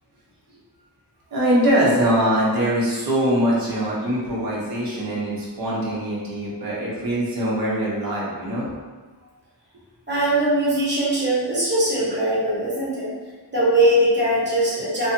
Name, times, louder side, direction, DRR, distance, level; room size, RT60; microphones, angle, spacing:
voice 1, 1.3-8.6, equal, 55° right, -6 dB, 0.9 m, -22 dB
voice 2, 10.1-13.1 13.5-15.1, right 1 dB, 25° right, -9 dB, 1.1 m, -21 dB
2.6 x 2.3 x 2.7 m, 1.3 s
wide cardioid pair, 115°, 41 cm